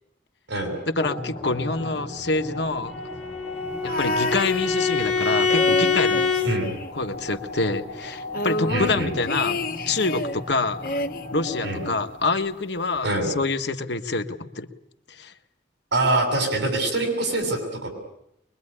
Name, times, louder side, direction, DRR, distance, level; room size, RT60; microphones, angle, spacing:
voice 1, 1.0-3.0 3.8-6.2 6.9-9.6 9.9-11.0 11.3-14.7 15.1-15.3, left 3 dB, 70° left, 7 dB, 1.5 m, -26 dB
sound 1, 1.0-12.4, left 1 dB, 25° left, 6.1 m, -37 dB
Bowed string instrument, 2.9-6.5, left 5 dB, 5° left, 4.6 m, -24 dB
sound 2, 3.8-5.1 5.4-7.4 7.6-7.7 8.0-10.4 10.8-12.1 13.0-13.1, left 1 dB, 50° left, 1.4 m, -30 dB
voice 2, 8.7-9.1 11.6-11.8 13.0-13.3 15.9-17.9, right 2 dB, 75° right, 5 dB, 7.0 m, -24 dB
23.5 x 22.5 x 9.9 m, 0.78 s
head